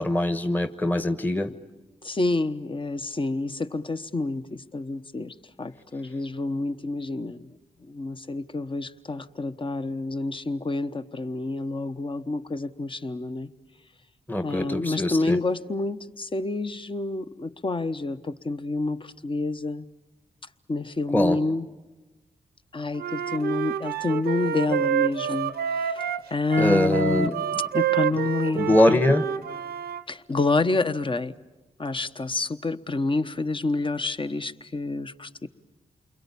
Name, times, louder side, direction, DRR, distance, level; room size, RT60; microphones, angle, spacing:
voice 1, 0.0-1.5 14.3-15.4 21.1-21.4 26.6-27.4 28.5-29.3, left 1 dB, 10° left, 9 dB, 1.3 m, -23 dB
voice 2, 2.0-7.5 7.9-13.5 14.4-19.9 20.7-21.7 22.7-27.3 27.7-29.0 30.1-31.3 31.8-35.5, left 3 dB, 35° left, 11 dB, 1.1 m, -28 dB
Wind instrument woodwind instrument, 23.0-30.0, right 9 dB, 85° right, 0.8 m, -28 dB
29.0 x 22.5 x 8.5 m, 1.2 s
supercardioid pair, 45°, 16 cm